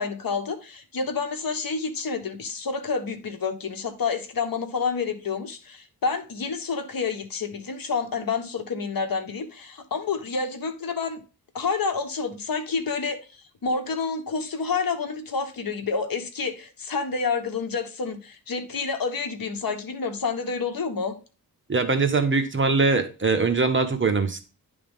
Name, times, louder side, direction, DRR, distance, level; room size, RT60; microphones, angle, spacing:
voice 1, 0.0-11.2 11.5-21.2, left 5 dB, 65° left, 1.1 m, -29 dB
voice 2, 21.7-24.4, right 4 dB, 35° right, 1.0 m, -22 dB
10.5 x 3.6 x 3.5 m
wide cardioid pair, 135°, 37 cm